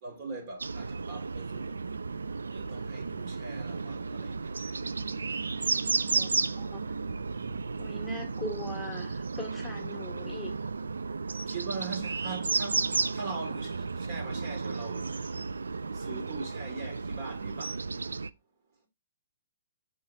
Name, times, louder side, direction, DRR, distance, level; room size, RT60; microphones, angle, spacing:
voice 1, 0.0-1.8 2.5-4.4 11.5-12.9 13.1-15.2 15.9-17.8, right 4 dB, 40° right, 1.8 m, -41 dB
sound 1, 0.6-18.3, right 4 dB, 70° right, 0.3 m, -33 dB
voice 2, 6.0-6.8 7.8-10.5, left 1 dB, 5° left, 1.5 m, -40 dB
5.5 x 3.9 x 4.5 m
figure-of-eight pair, 125°, 0 cm